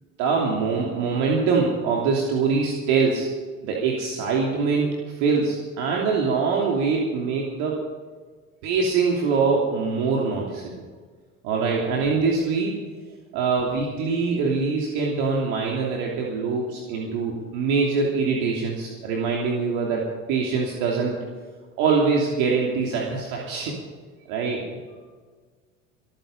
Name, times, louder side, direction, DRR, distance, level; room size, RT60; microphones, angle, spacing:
voice 1, 0.2-3.3 3.6-7.8 8.6-10.8 11.4-12.7 13.3-21.2 21.8-23.8 24.3-24.6, right 4 dB, 65° right, -2 dB, 3.0 m, -23 dB
25.0 x 9.3 x 5.4 m, 1.5 s
hypercardioid pair, 80°, 40 cm